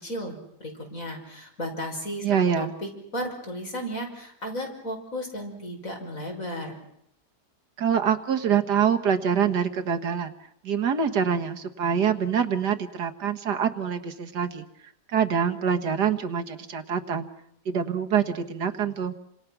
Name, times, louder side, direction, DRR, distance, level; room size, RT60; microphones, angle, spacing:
voice 1, 0.0-2.2 2.6-6.7, equal, 50° left, 2 dB, 5.9 m, -34 dB
voice 2, 2.2-2.7 7.8-10.3 10.6-14.7 15.1-17.3 17.7-19.2, right 7 dB, 75° right, 6 dB, 2.0 m, -25 dB
29.0 x 26.0 x 6.0 m, 0.72 s
omnidirectional pair, 1.8 m